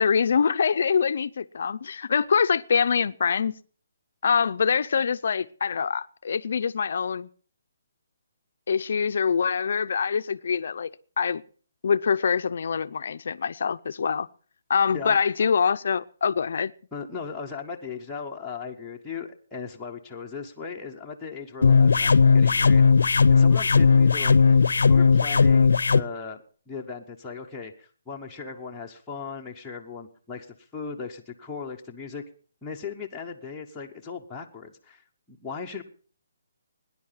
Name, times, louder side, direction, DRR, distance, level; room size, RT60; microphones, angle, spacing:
voice 1, 0.0-3.6 4.2-7.3 8.7-10.9 11.2-11.4 11.8-14.3 14.7-16.7, left 6 dB, 50° left, 0.6 m, -24 dB
voice 2, 14.9-15.5 16.9-22.9 23.3-32.2 32.6-35.8, left 5 dB, 5° left, 0.8 m, -38 dB
sound 1, 21.6-26.0, left 5 dB, 85° left, 0.7 m, -17 dB
18.0 x 10.5 x 5.7 m
hypercardioid pair, 175°, 0 cm